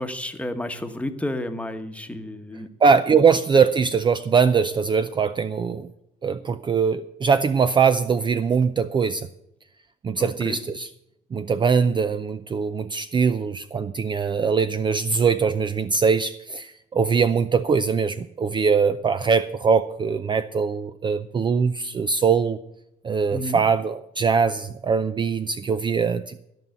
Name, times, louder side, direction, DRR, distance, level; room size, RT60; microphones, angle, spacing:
voice 1, 0.0-2.7 10.2-10.6 23.3-23.6, left 1 dB, 5° left, 7 dB, 1.1 m, -31 dB
voice 2, 2.8-5.9 6.2-9.3 10.0-10.9 11.3-22.6 23.0-26.3, right 5 dB, 30° right, 12 dB, 0.5 m, -22 dB
13.5 x 5.5 x 9.2 m, 0.81 s
cardioid pair, 110°, 17 cm